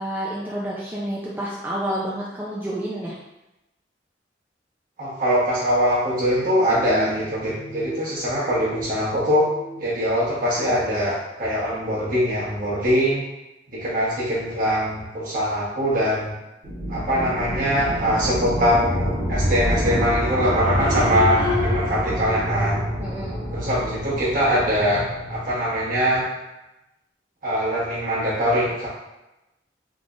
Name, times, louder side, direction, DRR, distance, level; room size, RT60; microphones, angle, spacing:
voice 1, 0.0-3.1 23.0-23.4, right 1 dB, 10° right, -6 dB, 0.4 m, -29 dB
voice 2, 5.0-9.4 9.8-13.2 13.7-16.3 16.9-22.8 23.5-25.0 25.3-26.2 27.4-28.9, equal, 50° right, -7 dB, 1.3 m, -22 dB
sound 1, 6.2-8.0 8.3-9.9 10.3-10.7, right 2 dB, 85° left, 1.0 m, -37 dB
sound 2, 16.6-25.4, equal, 30° right, 1.3 m, -26 dB
3.6 x 3.3 x 2.5 m, 0.96 s
head